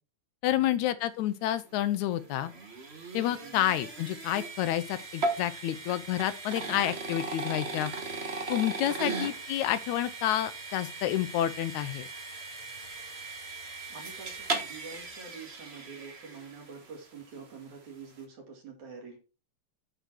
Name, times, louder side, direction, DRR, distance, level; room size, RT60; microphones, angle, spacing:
voice 1, 0.4-2.5 3.1-7.9 8.5-12.1, left 12 dB, 80° left, 2.0 m, -29 dB
sound 1, 1.7-16.9, right 3 dB, 90° right, 0.5 m, -38 dB
voice 2, 13.9-19.2, right 5 dB, 70° right, 3.7 m, -47 dB
9.0 x 6.2 x 4.5 m
omnidirectional pair, 3.5 m